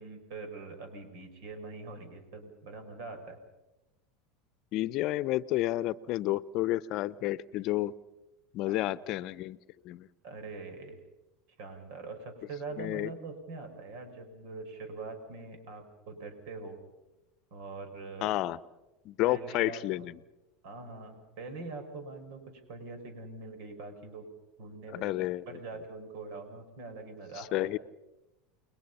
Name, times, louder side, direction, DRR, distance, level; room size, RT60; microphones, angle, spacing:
voice 1, 0.0-3.4 8.6-8.9 10.2-11.0 11.6-16.8 17.5-18.3 19.3-20.1 20.6-24.3 24.6-25.2 25.5-27.7, right 3 dB, 65° right, 7 dB, 5.8 m, -43 dB
voice 2, 4.7-7.9 8.5-9.6 9.8-10.1 12.8-13.1 18.2-18.6 19.0-20.2 24.9-25.4 27.5-27.8, left 16 dB, 55° left, 19 dB, 0.8 m, -30 dB
29.5 x 21.5 x 5.7 m, 1.0 s
hypercardioid pair, 90°, 0 cm